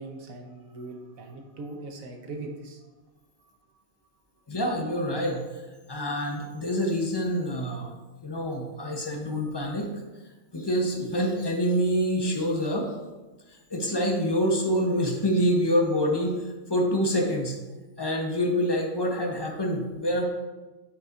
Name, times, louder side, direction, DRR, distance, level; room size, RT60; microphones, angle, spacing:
voice 1, 0.0-2.9, right 2 dB, 85° right, 3 dB, 1.3 m, -40 dB
voice 2, 4.5-5.6 5.9-7.9 8.2-9.9 10.5-12.9 13.7-17.6 18.0-20.2, equal, 25° left, 1 dB, 0.6 m, -26 dB
8.5 x 5.5 x 2.5 m, 1.2 s
omnidirectional pair, 1.4 m